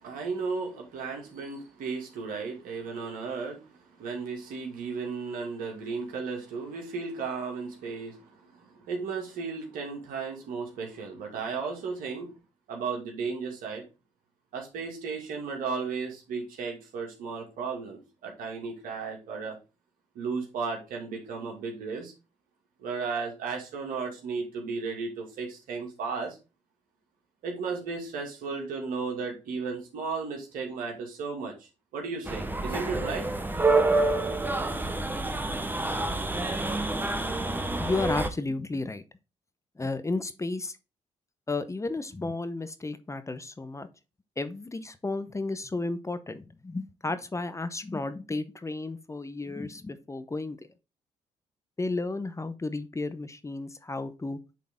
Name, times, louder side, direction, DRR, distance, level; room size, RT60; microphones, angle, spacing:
voice 1, 0.0-3.6 4.0-12.4 12.7-13.8 14.5-19.6 20.2-22.1 22.8-26.4 27.4-33.2 34.2-34.4, right 5 dB, 80° right, 1 dB, 2.2 m, -35 dB
sound 1, 32.3-38.3, right 2 dB, 15° right, 1.0 m, -27 dB
voice 2, 37.8-39.0 39.8-40.8 41.5-43.9 44.4-50.6 51.8-54.4, left 3 dB, 20° left, 12 dB, 0.8 m, -33 dB
7.4 x 3.9 x 3.6 m, 0.29 s
supercardioid pair, 55°, 14 cm